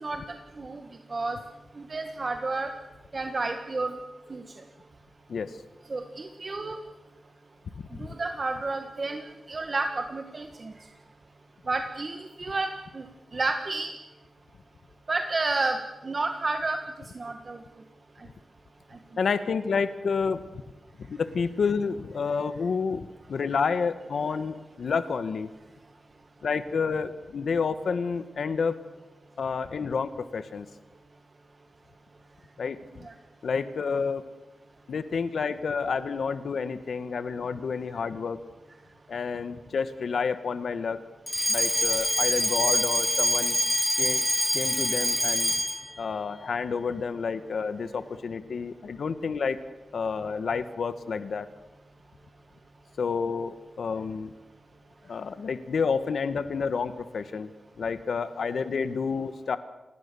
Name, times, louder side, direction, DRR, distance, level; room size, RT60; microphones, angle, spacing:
voice 1, 1.8-2.7 3.1-4.0 4.3-4.4 5.9-6.8 8.0-10.7 11.7-13.0 13.3-13.9 15.1-15.8 16.0-16.8 17.1-17.6 33.0-33.1, right 3 dB, 35° right, 5 dB, 1.6 m, -30 dB
voice 2, 5.3-5.6 7.8-8.1 19.2-20.4 21.1-25.5 26.4-28.8 29.4-30.7 32.6-33.1 33.4-34.2 34.9-38.4 39.1-41.0 41.5-43.6 44.0-44.2 44.5-45.5 46.0-49.6 49.9-51.5 53.0-54.3 55.0-57.5 57.8-59.6, left 5 dB, 75° left, 12 dB, 1.3 m, -29 dB
Alarm, 41.3-45.9, left 1 dB, 10° left, 1.4 m, -25 dB
28.5 x 21.0 x 6.9 m, 1.1 s
wide cardioid pair, 145°, 0 cm